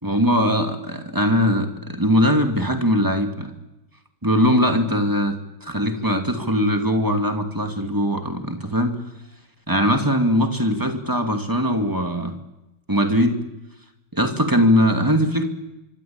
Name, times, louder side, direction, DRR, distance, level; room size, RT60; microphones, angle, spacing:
voice 1, 0.0-3.5 4.2-5.4 5.6-9.0 9.7-12.3 12.9-13.3 14.1-15.5, equal, 10° right, 5 dB, 2.4 m, -20 dB
25.5 x 24.5 x 8.9 m, 0.96 s
omnidirectional pair, 2.3 m